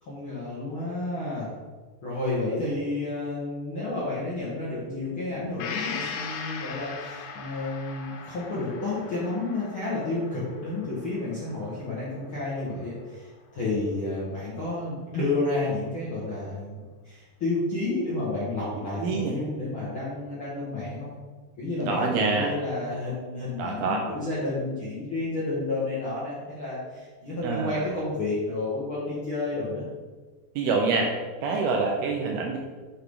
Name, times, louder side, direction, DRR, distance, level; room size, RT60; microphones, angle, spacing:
voice 1, 0.0-1.5 2.0-21.1 21.6-29.9, left 2 dB, 70° left, -8 dB, 1.2 m, -31 dB
Gong, 5.6-13.2 13.6-13.7, left 6 dB, 85° left, 3.1 m, -39 dB
voice 2, 19.0-19.4 21.9-22.5 23.6-24.0 27.4-27.9 30.6-31.1 31.4-32.6, right 4 dB, 80° right, 1 dB, 2.4 m, -26 dB
7.2 x 7.1 x 3.7 m, 1.4 s
omnidirectional pair, 5.0 m